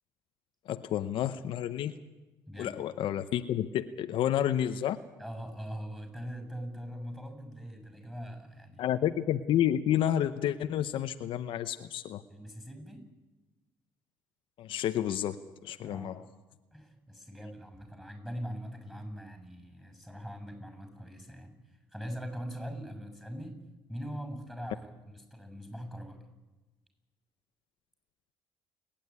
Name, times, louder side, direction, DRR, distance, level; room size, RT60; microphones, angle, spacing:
voice 1, 0.7-1.9 2.6-5.0 8.8-12.2 14.6-16.2, left 11 dB, 70° left, 9 dB, 0.9 m, -30 dB
voice 2, 2.5-2.8 5.2-8.9 12.3-13.0 15.8-16.3 16.7-23.6 23.9-26.3, equal, 5° right, 7 dB, 7.2 m, -42 dB
29.0 x 10.5 x 9.7 m, 1.1 s
supercardioid pair, 85°, 9 cm